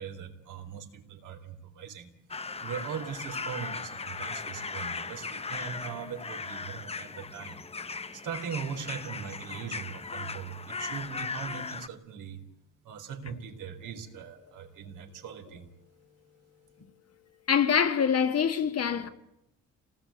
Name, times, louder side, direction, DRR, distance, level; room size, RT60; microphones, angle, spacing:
voice 1, 0.0-2.1 2.6-7.6 8.1-12.4 12.8-15.7, right 7 dB, 80° right, 3.1 m, -40 dB
sound 1, 2.3-11.9, left 4 dB, 20° left, 0.8 m, -38 dB
voice 2, 17.5-19.1, left 7 dB, 55° left, 1.8 m, -25 dB
27.0 x 18.5 x 8.2 m
cardioid pair, 90°, 30 cm